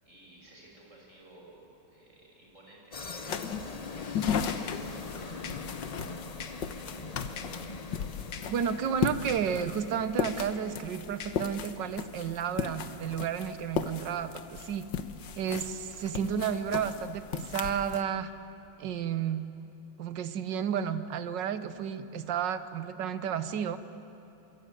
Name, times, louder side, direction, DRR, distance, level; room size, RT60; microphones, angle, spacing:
voice 1, 0.0-3.6 3.9-7.0, right 1 dB, 35° right, -2 dB, 7.1 m, -55 dB
sound 1, 2.9-10.1, left 4 dB, 35° left, 0.6 m, -42 dB
sound 2, 3.3-18.0, left 7 dB, 65° left, 1.7 m, -36 dB
sound 3, 4.0-11.7, left 7 dB, 90° left, 2.1 m, -48 dB
voice 2, 8.5-14.9 15.4-18.3 18.8-19.5 20.0-23.8, right 8 dB, 65° right, 11 dB, 1.7 m, -32 dB
27.5 x 23.0 x 9.3 m, 2.9 s
omnidirectional pair, 2.2 m